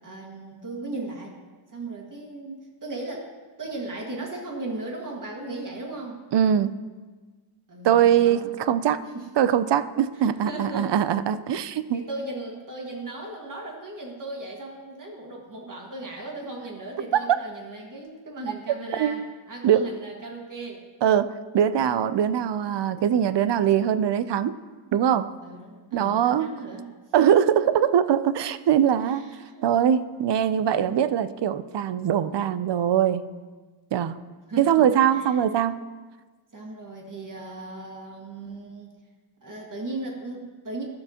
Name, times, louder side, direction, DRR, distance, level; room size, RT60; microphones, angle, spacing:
voice 1, 0.0-1.4 1.7-3.3 3.6-6.2 7.7-8.6 9.1-9.3 10.1-10.9 11.9-20.8 25.4-27.9 29.0-29.7 34.5-35.4 36.5-38.9 39.4-40.8, right 2 dB, 40° right, -2 dB, 1.8 m, -37 dB
voice 2, 6.3-6.7 7.8-9.0 9.4-12.1 17.1-17.4 19.0-19.3 19.6-19.9 21.0-24.6 24.9-25.3 25.9-26.5 27.1-29.2 29.6-33.2 33.9-34.2 34.6-35.9, right 9 dB, 60° right, 14 dB, 0.5 m, -22 dB
13.5 x 6.6 x 2.9 m, 1.4 s
wide cardioid pair, 115°, 48 cm